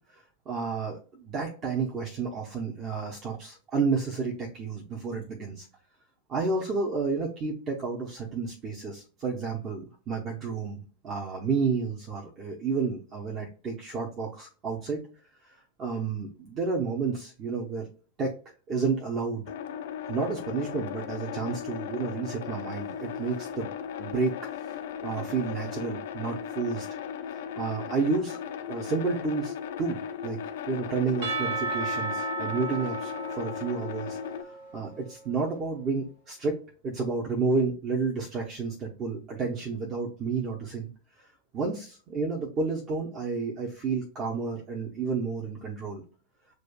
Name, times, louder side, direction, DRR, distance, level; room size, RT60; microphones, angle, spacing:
voice 1, 0.1-5.7 6.3-15.0 15.4-17.9 18.2-18.4 18.7-19.5 20.1-23.7 24.0-24.4 24.7-26.9 27.6-28.4 28.7-40.9 41.2-41.3 41.5-46.0, right 4 dB, 30° right, -1 dB, 0.9 m, -31 dB
sound 1, 19.5-34.4, left 8 dB, 55° left, 0.4 m, -37 dB
Percussion / Church bell, 31.2-35.1, right 3 dB, 55° right, 0.9 m, -34 dB
7.5 x 2.5 x 2.3 m, 0.38 s
figure-of-eight pair, 90°, 0 cm